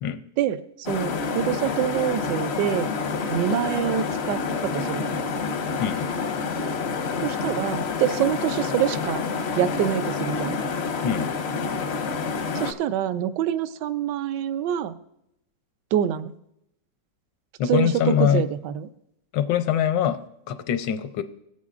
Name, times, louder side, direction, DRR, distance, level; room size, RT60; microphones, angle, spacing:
voice 1, 0.4-2.9 3.3-5.1 7.2-9.2 9.6-10.6 12.5-14.9 15.9-16.3 17.7-18.9, right 10 dB, 80° right, 12 dB, 1.2 m, -26 dB
sound 1, 0.9-12.7, left 4 dB, 60° left, 0.7 m, -28 dB
voice 2, 17.6-18.4 19.3-20.2 20.5-21.2, left 9 dB, 85° left, 10 dB, 1.4 m, -23 dB
20.0 x 8.3 x 2.5 m, 0.82 s
omnidirectional pair, 1.9 m